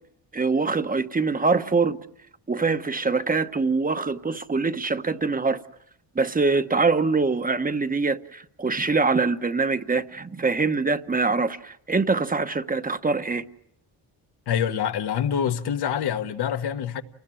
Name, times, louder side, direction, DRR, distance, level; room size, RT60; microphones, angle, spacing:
voice 1, 0.3-2.0 2.5-5.6 6.1-13.4, right 4 dB, 20° right, 1.0 m, -24 dB
voice 2, 14.5-17.0, left 8 dB, 75° left, 1.5 m, -26 dB
29.5 x 20.0 x 9.0 m
cardioid pair, 130°, 40 cm